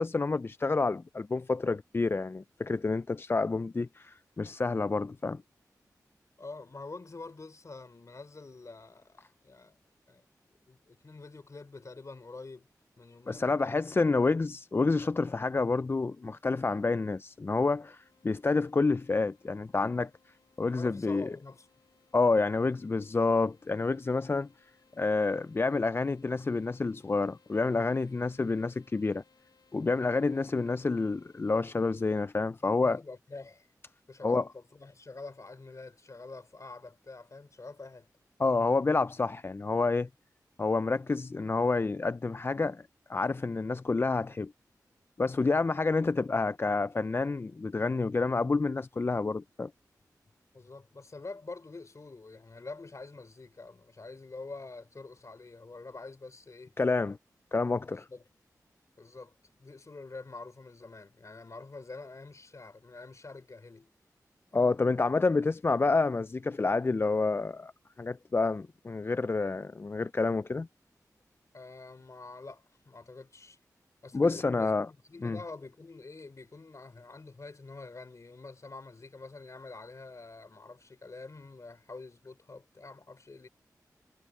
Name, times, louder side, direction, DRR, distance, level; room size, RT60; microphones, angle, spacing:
voice 1, 0.0-5.4 13.3-20.1 20.6-21.3 22.1-24.5 25.0-29.2 29.7-33.0 34.2-34.4 38.4-40.1 40.6-42.8 43.1-44.5 45.2-49.7 56.8-57.2 57.5-58.1 64.5-67.7 68.0-70.7 74.1-74.9 75.2-75.4, left 3 dB, 35° left, 0.4 m, -28 dB
voice 2, 6.4-9.8 10.1-10.2 10.7-12.7 13.0-14.3 20.7-21.7 32.8-33.7 34.1-38.1 45.5-45.7 50.5-56.7 57.9-58.2 59.0-59.3 59.6-63.9 71.5-73.6 74.0-83.5, left 3 dB, 50° left, 3.3 m, -46 dB
sound 1, 18.0-32.2, left 5 dB, 85° left, 3.3 m, -67 dB
cardioid pair, 50°, 7 cm